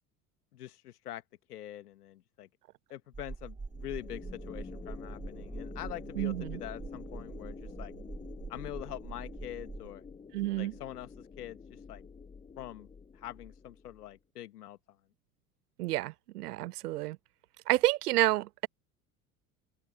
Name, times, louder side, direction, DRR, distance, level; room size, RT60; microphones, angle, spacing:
voice 1, 0.5-1.2 1.5-2.5 2.9-7.9 8.5-10.0 10.6-12.1 12.6-14.8, left 13 dB, 80° left, 1.8 m, -44 dB
sound 1, 3.1-9.9, right 4 dB, 15° right, 1.9 m, -44 dB
sound 2, 3.7-14.2, left 5 dB, 15° left, 0.7 m, -48 dB
voice 2, 6.2-6.6 10.3-10.7 15.8-17.2 17.7-18.7, right 17 dB, 80° right, 0.8 m, -29 dB
hypercardioid pair, 70°, 46 cm